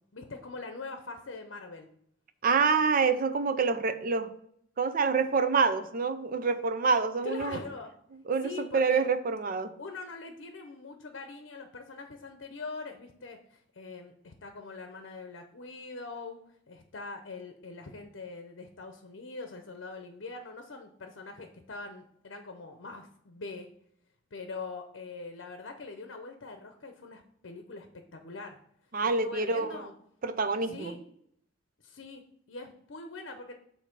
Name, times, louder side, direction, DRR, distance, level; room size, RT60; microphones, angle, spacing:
voice 1, 0.1-1.9 7.2-7.9 8.4-9.1 9.8-16.4 16.7-23.7 24.3-28.6 29.2-29.9 30.6-31.0 31.8-33.5, left 3 dB, 65° left, 6 dB, 0.7 m, -43 dB
voice 2, 2.4-4.3 4.8-7.6 8.3-9.7 28.9-29.8 30.2-30.9, right 4 dB, 45° right, 11 dB, 0.5 m, -27 dB
8.1 x 2.8 x 5.9 m, 0.70 s
head